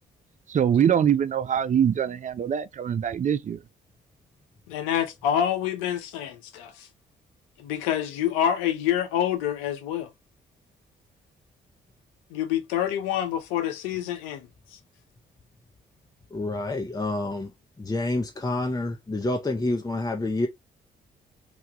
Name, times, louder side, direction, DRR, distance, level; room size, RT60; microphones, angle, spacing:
voice 1, 0.5-3.6, right 8 dB, 40° right, 0.4 m, -23 dB
voice 2, 4.7-6.9 7.6-10.1 12.3-14.5, left 10 dB, 85° left, 0.5 m, -27 dB
voice 3, 16.3-17.5 17.8-20.5, left 2 dB, 20° left, 0.7 m, -28 dB
3.0 x 2.3 x 2.8 m
hypercardioid pair, 50°, 20 cm